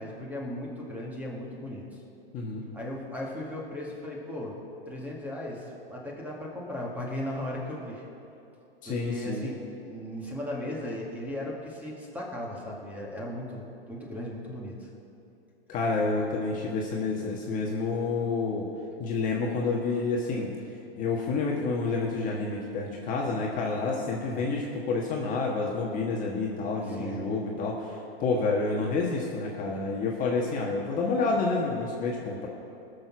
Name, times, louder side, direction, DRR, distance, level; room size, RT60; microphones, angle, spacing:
voice 1, 0.0-1.8 2.7-4.6 4.9-8.0 8.9-14.9 24.2-24.6 26.9-27.2, left 1 dB, 5° right, -3 dB, 2.0 m, -37 dB
voice 2, 2.3-2.6 8.8-9.5 15.7-18.7 19.0-20.5 21.0-32.5, left 3 dB, 25° left, -2 dB, 1.4 m, -29 dB
19.5 x 6.6 x 6.1 m, 2.8 s
hypercardioid pair, 140°, 31 cm